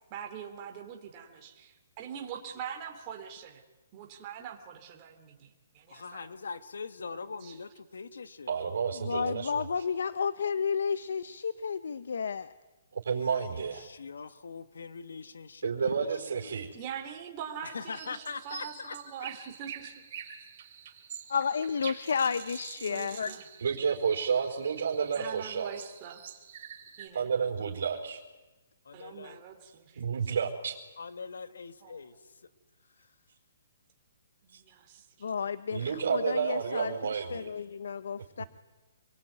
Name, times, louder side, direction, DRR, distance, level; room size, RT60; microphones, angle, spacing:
voice 1, 0.1-3.6 3.9-6.4 7.0-7.1 7.4-7.5 16.7-19.9 22.8-23.5 25.1-26.2 27.0-27.3 28.9-30.1 31.8-32.0 34.4-35.3, right 8 dB, 25° right, 2 dB, 3.4 m, -43 dB
voice 2, 5.9-8.6 13.1-16.1 16.3-16.5 17.6-19.0 28.9-29.4 31.0-32.2, left 5 dB, 90° left, 11 dB, 2.0 m, -42 dB
voice 3, 8.5-9.8 13.0-13.9 15.6-16.7 23.6-25.9 27.1-28.2 30.0-30.8 34.5-34.6 35.7-37.5, right 6 dB, 70° right, -1 dB, 4.7 m, -31 dB
voice 4, 9.0-12.5 21.3-23.3 35.2-38.4, left 6 dB, 70° left, 15 dB, 0.9 m, -32 dB
sound 1, 17.9-27.1, right 9 dB, 40° right, 3.8 m, -47 dB
28.0 x 22.5 x 9.5 m, 1.2 s
hypercardioid pair, 170°, 0 cm